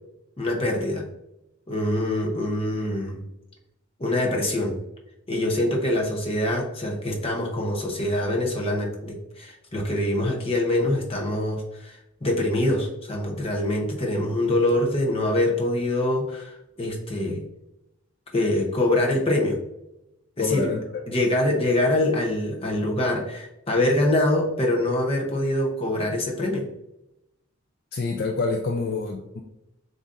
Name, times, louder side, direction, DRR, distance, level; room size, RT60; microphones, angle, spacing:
voice 1, 0.4-1.1 1.7-3.3 4.0-4.8 5.3-17.4 18.3-19.6 20.4-20.7 21.1-26.7, left 1 dB, 25° left, 0 dB, 0.7 m, -24 dB
voice 2, 20.4-21.0 27.9-29.4, left 4 dB, 45° left, 2 dB, 0.3 m, -27 dB
7.0 x 2.6 x 2.5 m, 0.89 s
head